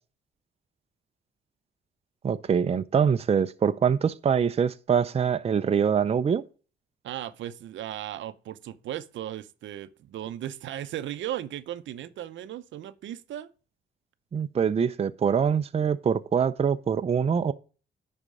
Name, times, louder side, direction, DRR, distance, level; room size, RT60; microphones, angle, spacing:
voice 1, 2.2-6.4 14.3-17.5, right 7 dB, 30° right, 0.5 m, -24 dB
voice 2, 7.0-13.5, right 12 dB, 70° right, 0.7 m, -36 dB
10.5 x 4.3 x 4.8 m
cardioid pair, 90°, 20 cm